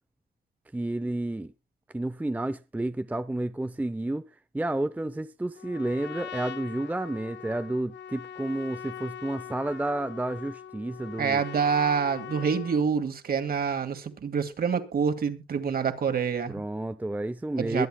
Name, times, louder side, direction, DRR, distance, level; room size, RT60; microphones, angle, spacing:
voice 1, 0.7-1.5 1.9-4.2 4.5-11.4 16.5-17.9, right 1 dB, 10° right, 0.6 m, -31 dB
Trumpet, 5.6-12.9, left 9 dB, 65° left, 1.6 m, -42 dB
voice 2, 11.2-16.6 17.6-17.9, right 6 dB, 50° right, 2.4 m, -27 dB
22.5 x 8.2 x 2.3 m
cardioid pair, 90°, 20 cm